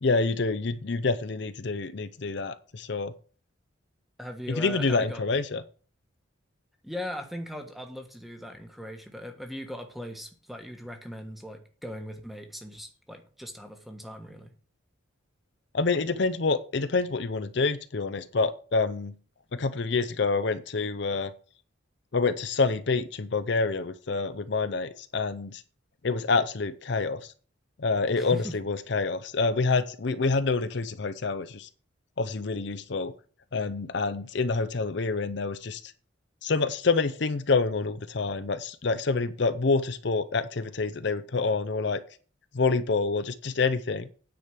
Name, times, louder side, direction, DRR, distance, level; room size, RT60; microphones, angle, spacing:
voice 1, 0.0-3.1 4.6-5.6 15.7-19.1 19.5-21.3 22.1-25.6 26.0-27.3 27.8-31.7 32.2-33.1 33.5-35.8 36.4-42.0 42.5-44.1, left 4 dB, 55° left, 10 dB, 0.6 m, -27 dB
voice 2, 4.2-5.2 6.8-14.5 28.2-28.6, left 1 dB, ahead, 5 dB, 1.3 m, -39 dB
9.4 x 5.1 x 7.4 m, 0.40 s
head